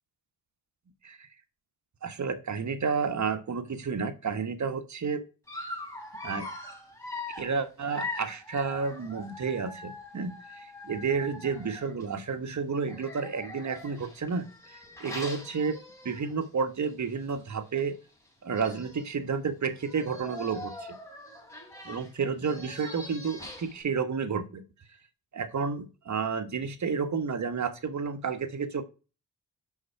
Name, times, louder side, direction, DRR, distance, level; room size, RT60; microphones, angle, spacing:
voice 1, 2.0-5.2 6.2-6.5 7.4-14.5 15.0-15.8 16.0-18.0 18.4-20.9 21.8-24.6 25.3-28.8, right 5 dB, 50° right, 9 dB, 1.4 m, -31 dB
Dog, 5.5-12.1 12.8-16.4 16.8-17.0 17.3-17.4 18.3-18.4 18.5-19.1 19.7-23.8, left 2 dB, 5° left, 4.3 m, -42 dB
6.4 x 5.7 x 5.5 m, 0.33 s
cardioid pair, 65°, 38 cm